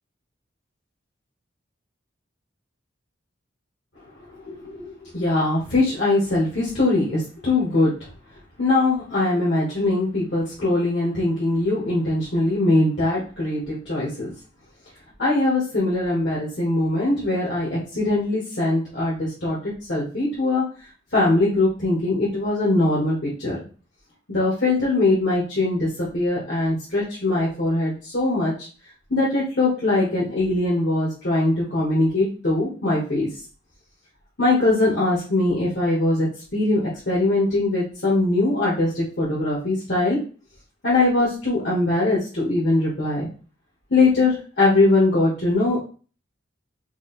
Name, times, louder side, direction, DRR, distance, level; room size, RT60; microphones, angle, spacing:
voice 1, 4.3-8.1 8.6-14.3 15.2-20.6 21.1-23.6 24.3-28.7 29.1-33.3 34.4-36.3 36.5-40.2 40.8-43.3 43.9-45.8, left 2 dB, 60° left, -7 dB, 1.6 m, -21 dB
4.7 x 2.4 x 4.3 m, 0.37 s
head